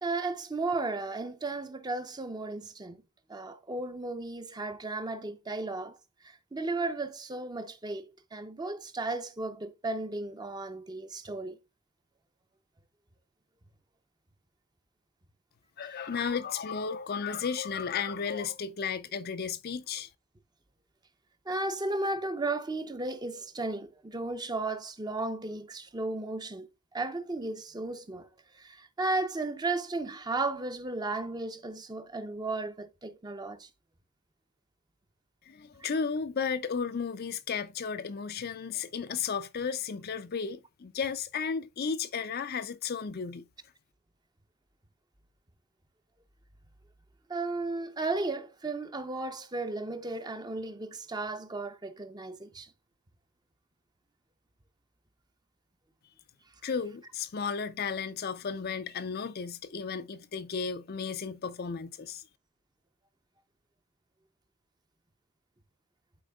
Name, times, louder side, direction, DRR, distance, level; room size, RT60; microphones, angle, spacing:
voice 1, 0.0-3.0 3.3-6.0 6.2-11.6 16.2-16.3 21.5-28.3 28.5-33.7 35.8-35.9 47.3-52.7, right 2 dB, 20° right, 0.7 m, -34 dB
voice 2, 15.8-20.1 35.5-43.5 56.6-62.2, left 6 dB, 45° left, 0.5 m, -34 dB
11.5 x 4.5 x 2.3 m
head